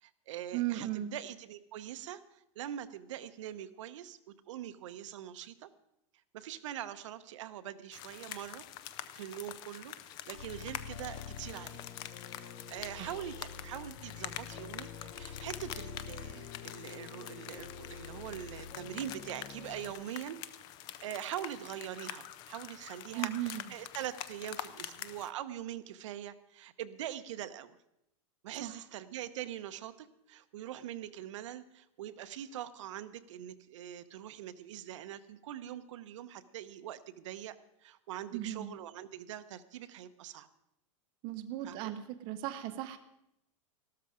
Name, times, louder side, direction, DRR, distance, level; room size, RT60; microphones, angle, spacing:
voice 1, 0.0-5.7 6.3-8.6 9.1-9.9 10.3-11.8 12.3-20.4 21.0-27.8 28.4-37.6 37.8-40.5 41.6-41.9, right 11 dB, 65° right, 12 dB, 0.9 m, -43 dB
voice 2, 0.5-1.1 13.0-13.1 23.1-23.6 28.6-28.8 38.3-38.7 41.2-43.0, right 13 dB, 30° right, 8 dB, 0.6 m, -36 dB
sound 1, 7.9-25.3, left 12 dB, 25° left, 0.5 m, -46 dB
sound 2, 10.3-19.9, left 7 dB, 50° left, 1.3 m, -47 dB
14.0 x 12.5 x 5.0 m, 0.83 s
supercardioid pair, 175°, 17 cm